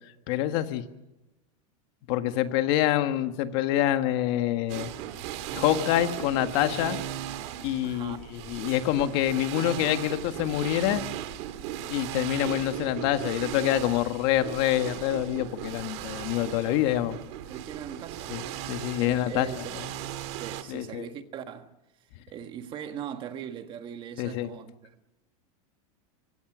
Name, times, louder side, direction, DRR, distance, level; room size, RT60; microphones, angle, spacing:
voice 1, 0.3-0.8 2.1-4.9 5.5-7.0 7.6-11.0 11.9-17.2 18.3-18.4 18.7-19.5 20.7-21.1 24.2-24.5, left 13 dB, 45° left, 1.7 m, -26 dB
sound 1, 4.7-20.6, right 11 dB, 50° right, 2.2 m, -37 dB
voice 2, 7.8-8.2 17.5-18.4 19.0-19.8 20.4-21.7 22.3-25.1, right 9 dB, 25° right, 1.5 m, -40 dB
25.5 x 23.0 x 6.3 m
supercardioid pair, 165°, 19 cm